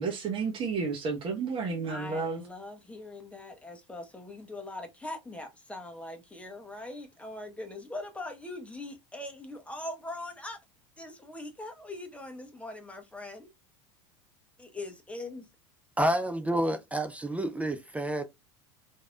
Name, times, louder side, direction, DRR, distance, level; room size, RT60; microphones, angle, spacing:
voice 1, 0.0-2.4, right 4 dB, 35° right, 0.9 m, -31 dB
voice 2, 1.9-10.6 11.0-13.5 14.6-15.5, left 2 dB, 10° left, 0.9 m, -41 dB
voice 3, 16.0-18.2, right 1 dB, 10° right, 0.4 m, -29 dB
3.2 x 2.6 x 2.3 m
hypercardioid pair, 80°, 16 cm